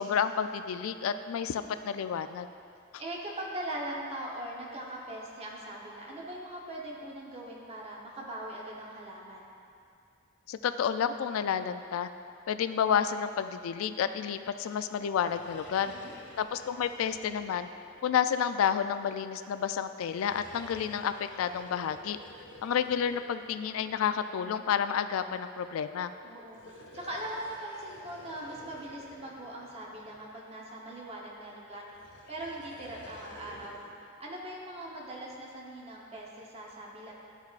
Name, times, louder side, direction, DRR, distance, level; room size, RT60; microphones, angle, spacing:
voice 1, 0.0-2.5 10.5-12.1 12.5-15.9 16.4-17.7 18.0-22.2 22.6-26.1, left 8 dB, 90° left, 10 dB, 0.3 m, -30 dB
voice 2, 3.0-9.5 15.8-16.1 26.2-31.9 32.3-33.8 34.2-37.1, right 1 dB, 30° right, -3 dB, 0.9 m, -41 dB
sound 1, 15.0-18.6 19.9-24.2 26.4-30.4 31.7-34.0, left 1 dB, 60° left, 0.8 m, -52 dB
11.5 x 4.5 x 2.4 m, 2.4 s
head